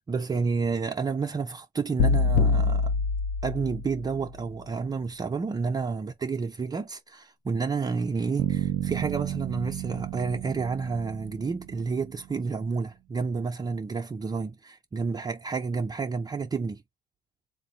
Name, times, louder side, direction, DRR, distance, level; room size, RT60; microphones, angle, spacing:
voice 1, 0.1-2.9 3.4-16.8, right 4 dB, 25° right, 0.5 m, -30 dB
sound 1, 2.0-4.1, left 4 dB, 85° left, 0.5 m, -24 dB
Bass guitar, 8.4-12.4, right 13 dB, 85° right, 0.5 m, -33 dB
3.6 x 2.6 x 4.3 m
cardioid pair, 110°, 17 cm